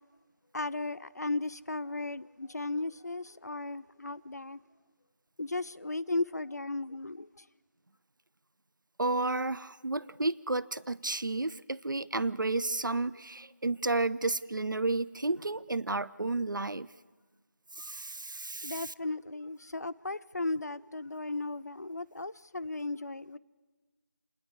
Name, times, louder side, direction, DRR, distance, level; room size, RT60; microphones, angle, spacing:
voice 1, 0.5-4.6 5.4-7.4 18.6-23.4, left 2 dB, 55° left, 0.6 m, -36 dB
voice 2, 9.0-16.9 17.7-18.9, right 2 dB, 80° right, 0.6 m, -32 dB
29.0 x 10.5 x 8.5 m
figure-of-eight pair, 170°, 10 cm